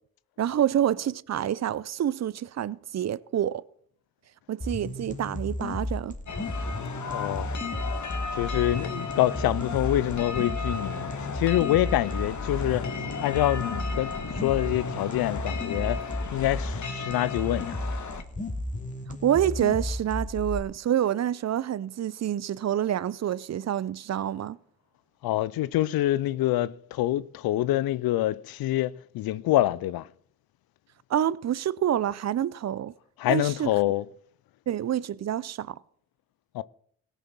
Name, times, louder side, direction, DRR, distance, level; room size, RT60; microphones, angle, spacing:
voice 1, 0.4-3.6 4.5-6.2 19.2-24.6 31.1-32.9 33.3-33.7 34.7-35.8, right 10 dB, 50° right, 0.6 m, -27 dB
sound 1, 4.6-20.6, left 1 dB, 20° left, 2.4 m, -33 dB
sound 2, 6.3-18.2, left 5 dB, 55° left, 1.6 m, -35 dB
voice 2, 7.1-7.5 8.3-16.0 16.3-17.8 25.2-30.1 33.2-34.1 36.5-36.6, left 14 dB, 80° left, 0.6 m, -26 dB
17.0 x 6.9 x 6.1 m
supercardioid pair, 50°, 36 cm